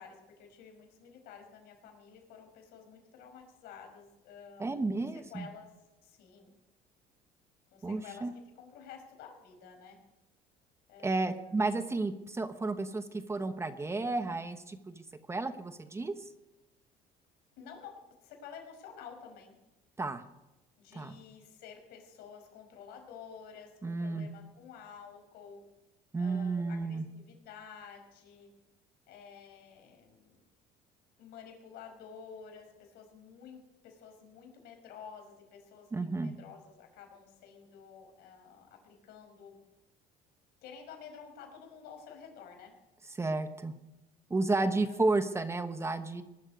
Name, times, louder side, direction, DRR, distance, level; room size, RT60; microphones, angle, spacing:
voice 1, 0.0-5.7 6.0-6.5 7.7-10.0 10.9-11.5 17.6-19.6 20.8-25.6 26.1-28.5 29.1-30.4 31.2-39.6 40.6-42.7 44.6-45.3, left 7 dB, 75° left, 3 dB, 5.4 m, -51 dB
voice 2, 4.6-5.5 7.8-8.3 11.0-16.1 20.0-20.2 20.9-21.1 23.8-24.3 26.1-27.0 35.9-36.3 43.2-43.7 44.3-46.2, right 3 dB, 15° right, 10 dB, 1.0 m, -32 dB
20.0 x 12.5 x 5.2 m, 0.99 s
cardioid pair, 125°, 16 cm